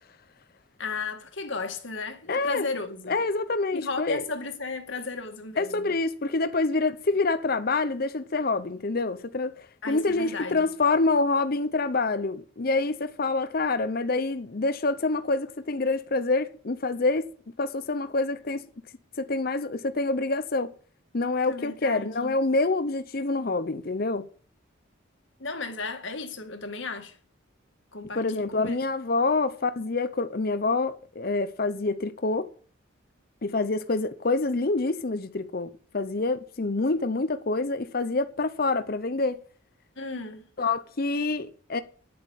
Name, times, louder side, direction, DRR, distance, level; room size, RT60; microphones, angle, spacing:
voice 1, 0.8-3.2 3.7-6.0 9.8-10.7 21.5-22.4 25.4-27.2 27.9-28.8 40.0-40.4, left 3 dB, 65° left, 2.0 m, -34 dB
voice 2, 2.3-2.7 3.1-4.2 5.6-17.3 17.6-18.6 19.2-20.7 21.1-24.2 28.1-32.5 33.4-39.4 40.6-41.8, left 3 dB, 45° left, 0.7 m, -26 dB
10.5 x 7.8 x 6.5 m
head